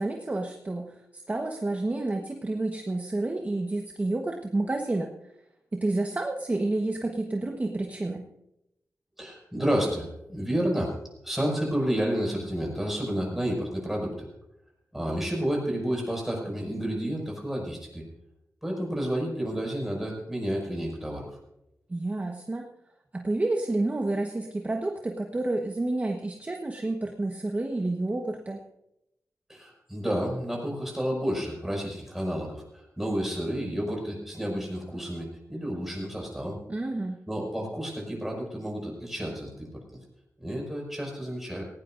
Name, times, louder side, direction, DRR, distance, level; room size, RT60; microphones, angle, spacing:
voice 1, 0.0-5.1 5.7-8.3 21.9-22.7 23.1-28.6 36.7-37.2, right 2 dB, 25° right, 2 dB, 1.3 m, -29 dB
voice 2, 9.2-10.9 11.2-14.3 14.9-18.0 18.6-21.3 29.5-36.6 37.3-39.7 40.4-41.6, equal, 5° right, -1 dB, 5.9 m, -30 dB
18.5 x 17.5 x 2.6 m, 0.86 s
wide cardioid pair, 105°, 6 cm